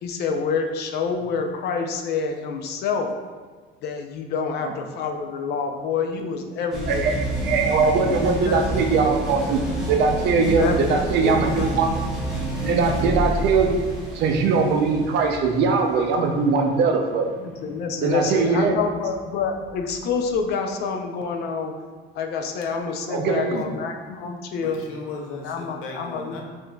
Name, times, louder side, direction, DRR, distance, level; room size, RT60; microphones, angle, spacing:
voice 1, 0.0-3.1 3.8-7.1 8.0-8.6 8.9-9.1 10.3-11.7 17.4-21.7 22.1-24.8 25.4-26.4, left 5 dB, 55° left, 4 dB, 0.4 m, -27 dB
sound 1, 6.7-20.5, right 1 dB, ahead, 0.7 m, -29 dB
voice 2, 6.9-11.9 12.6-13.9 14.1-17.3 18.0-18.8 23.1-23.7, right 4 dB, 55° right, 3 dB, 0.5 m, -21 dB
voice 3, 24.5-26.4, left 3 dB, 90° left, 1 dB, 0.7 m, -36 dB
5.5 x 2.6 x 2.2 m, 1.5 s
cardioid pair, 160°, 21 cm